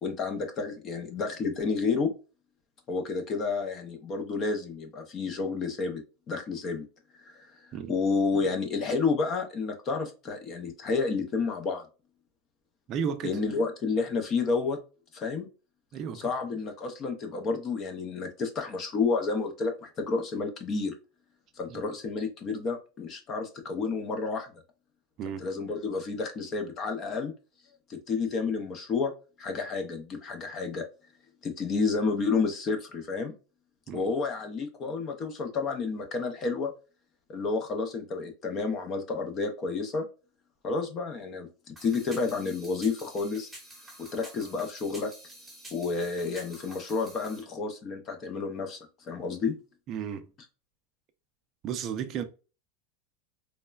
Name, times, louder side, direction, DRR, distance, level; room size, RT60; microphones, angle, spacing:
voice 1, 0.0-2.1 2.9-6.8 7.2-7.5 7.9-11.8 13.2-14.8 15.1-15.5 16.1-21.0 21.6-24.6 25.4-27.3 27.9-29.1 29.4-30.8 31.4-33.3 33.9-36.7 37.3-40.0 40.6-43.5 44.1-45.1 45.7-48.8 49.1-49.5, left 4 dB, 30° left, 0.5 m, -30 dB
voice 2, 12.9-13.4 15.9-16.2 21.7-21.8 25.2-25.5 33.9-34.1 49.9-50.3 51.6-52.2, right 7 dB, 35° right, 0.4 m, -33 dB
sound 1, 41.8-47.4, right 1 dB, 5° right, 1.0 m, -48 dB
3.1 x 2.1 x 2.2 m
supercardioid pair, 155°, 0 cm